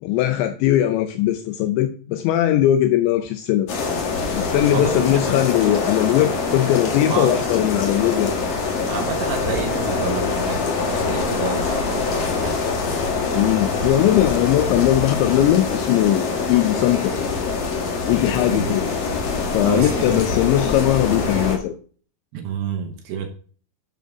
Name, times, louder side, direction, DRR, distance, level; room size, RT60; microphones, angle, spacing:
voice 1, 0.0-3.7 4.3-8.4 13.3-17.1 18.1-18.9 19.4-21.7, left 12 dB, 80° left, 7 dB, 2.9 m, -19 dB
sound 1, 3.7-21.6, left 4 dB, 60° left, 1.7 m, -24 dB
voice 2, 4.7-5.2 7.1-7.4 8.9-12.6 18.5-18.8 19.6-20.2 22.3-23.3, right 7 dB, 70° right, 3 dB, 2.8 m, -29 dB
11.0 x 6.8 x 3.6 m, 0.43 s
omnidirectional pair, 5.2 m